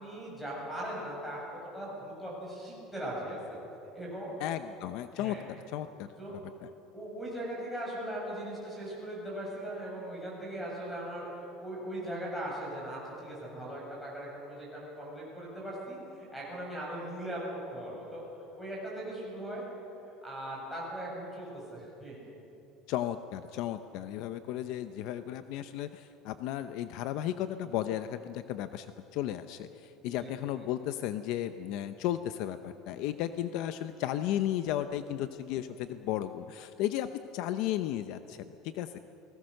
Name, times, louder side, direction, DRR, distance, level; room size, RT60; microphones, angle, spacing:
voice 1, 0.0-1.4 1.7-3.6 3.9-4.4 5.1-5.4 6.2-6.4 6.9-18.2 18.6-19.7 20.2-22.2 30.2-30.5, right 1 dB, 5° left, -4 dB, 7.3 m, -39 dB
voice 2, 4.4-6.4 22.9-28.9 29.1-39.0, left 12 dB, 55° left, 10 dB, 0.7 m, -34 dB
29.5 x 20.5 x 6.6 m, 2.9 s
cardioid pair, 175°, 0 cm